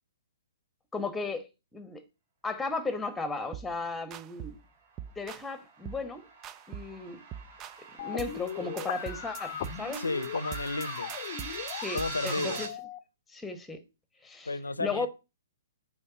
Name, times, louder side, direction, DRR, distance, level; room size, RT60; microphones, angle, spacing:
voice 1, 0.9-2.0 2.4-4.6 5.2-6.2 6.7-7.2 8.0-10.0 11.7-12.0 12.2-12.7 13.3-13.8 14.2-14.5 14.8-15.1, left 3 dB, 5° left, 1.2 m, -35 dB
sound 1, 3.5-3.8 4.1-4.6 5.0-5.5 5.9-6.1 6.4-7.0 7.3-7.8 8.2-8.5 8.8-12.7, right 9 dB, 20° right, 0.4 m, -43 dB
sound 2, 4.9-12.7, right 4 dB, 40° right, 2.7 m, -43 dB
sound 3, 8.0-13.0, left 11 dB, 40° left, 0.7 m, -39 dB
voice 2, 9.9-11.1 11.9-12.6 14.4-15.1, left 3 dB, 75° left, 0.7 m, -32 dB
7.0 x 4.9 x 6.9 m
figure-of-eight pair, 120°, 0 cm